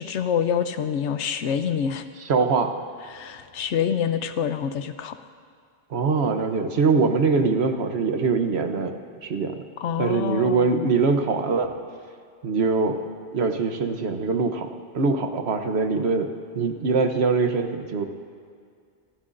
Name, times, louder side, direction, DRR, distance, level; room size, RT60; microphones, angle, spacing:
voice 1, 0.0-2.0 3.1-5.2 9.8-10.9, left 8 dB, 85° left, 10 dB, 1.0 m, -26 dB
voice 2, 2.2-2.7 5.9-9.6 10.0-11.7 12.4-13.0 13.3-14.7 14.9-18.0, right 4 dB, 70° right, 6 dB, 1.2 m, -23 dB
25.5 x 13.5 x 2.6 m, 2.2 s
omnidirectional pair, 1.2 m